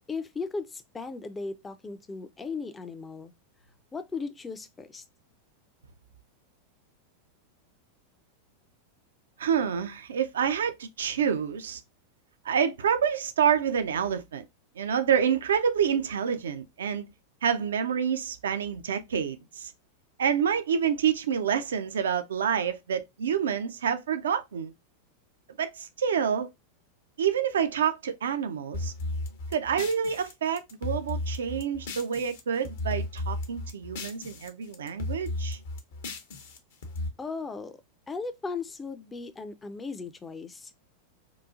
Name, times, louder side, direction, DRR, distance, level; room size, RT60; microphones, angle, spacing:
voice 1, 0.1-3.3 3.9-5.0 37.2-37.8 38.1-40.7, left 4 dB, 15° left, 0.4 m, -37 dB
voice 2, 9.4-11.8 12.4-14.4 14.8-17.1 17.4-19.7 20.2-24.7 25.6-26.5 27.2-28.9 29.5-35.6, right 7 dB, 65° right, 0.3 m, -28 dB
sound 1, 28.7-32.4 32.6-34.5 34.7-37.1, left 2 dB, 60° left, 0.7 m, -34 dB
3.8 x 2.3 x 2.4 m
figure-of-eight pair, 90°, 0 cm